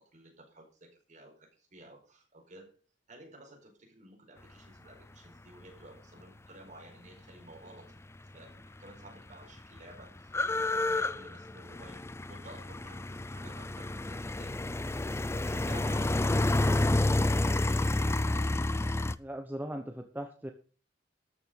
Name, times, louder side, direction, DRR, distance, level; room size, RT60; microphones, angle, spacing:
voice 1, 0.1-2.8 3.1-8.5 8.8-17.3 17.6-18.0, right 1 dB, 40° right, 1 dB, 4.8 m, -54 dB
sound 1, 8.5-8.6 8.8-19.1, left 2 dB, 15° left, 0.5 m, -29 dB
voice 2, 19.2-20.5, right 1 dB, 10° right, 5 dB, 1.0 m, -39 dB
13.5 x 6.7 x 6.4 m, 0.37 s
head